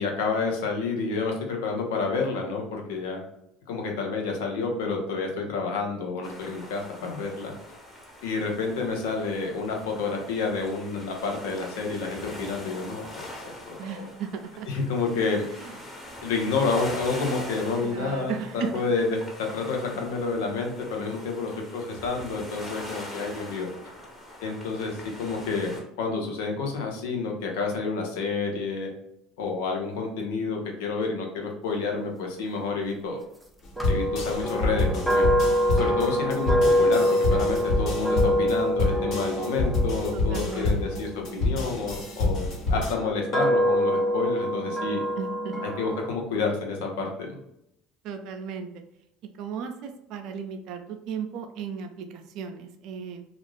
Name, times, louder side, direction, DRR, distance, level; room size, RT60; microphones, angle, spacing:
voice 1, 0.0-3.2 3.7-7.5 8.2-14.1 14.7-15.5 16.2-23.7 24.4-28.9 29.4-33.2 33.9-35.3 35.7-45.0 45.6-47.4, left 4 dB, 80° left, 1 dB, 0.7 m, -29 dB
sound 1, 6.2-25.8, left 1 dB, 15° left, 1.0 m, -42 dB
voice 2, 13.8-14.7 15.6-15.8 17.8-18.8 40.1-41.0 45.2-45.7 48.0-48.8 49.4-53.3, right 6 dB, 65° right, 5 dB, 0.4 m, -35 dB
sound 2, 33.8-42.9, left 2 dB, 60° left, 1.0 m, -27 dB
sound 3, 33.8-41.9 42.6-46.1, equal, ahead, 0.5 m, -26 dB
2.4 x 2.4 x 3.2 m, 0.79 s
supercardioid pair, 85°, 0 cm